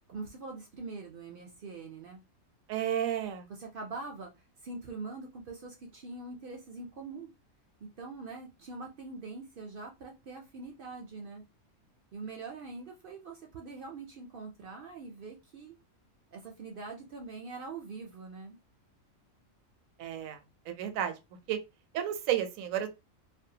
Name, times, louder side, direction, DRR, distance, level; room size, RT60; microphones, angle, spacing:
voice 1, 0.1-2.2 3.5-4.3 4.6-7.3 8.0-11.4 12.1-15.7 16.3-18.6, right 3 dB, 65° right, 0.5 m, -43 dB
voice 2, 2.7-3.5 20.0-20.4 20.7-21.1 21.5-21.6 21.9-22.9, right 10 dB, 80° right, 1.0 m, -31 dB
2.6 x 2.1 x 2.7 m
omnidirectional pair, 1.4 m